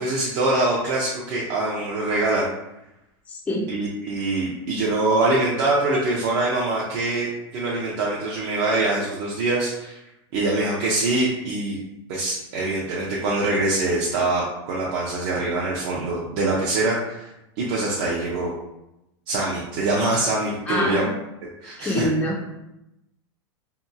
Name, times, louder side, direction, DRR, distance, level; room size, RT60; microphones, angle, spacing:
voice 1, 0.0-2.5 3.7-10.0 10.3-11.8 12.1-18.5 19.3-21.1 21.6-22.1, right 2 dB, 55° right, -4 dB, 0.5 m, -24 dB
voice 2, 3.3-3.7 20.7-21.1 21.8-22.4, left 1 dB, 10° left, -3 dB, 0.4 m, -25 dB
2.7 x 2.3 x 2.5 m, 0.90 s
supercardioid pair, 135°, 14 cm